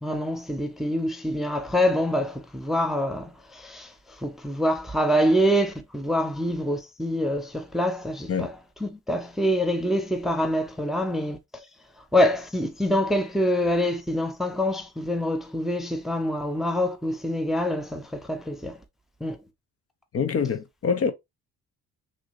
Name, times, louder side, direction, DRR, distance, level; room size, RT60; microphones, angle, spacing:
voice 1, 0.0-8.5 8.8-11.6 12.1-18.8 19.2-19.4, equal, ahead, 0.6 m, -25 dB
voice 2, 20.1-21.1, left 6 dB, 45° left, 0.8 m, -25 dB
6.0 x 2.8 x 2.6 m
cardioid pair, 120°, 33 cm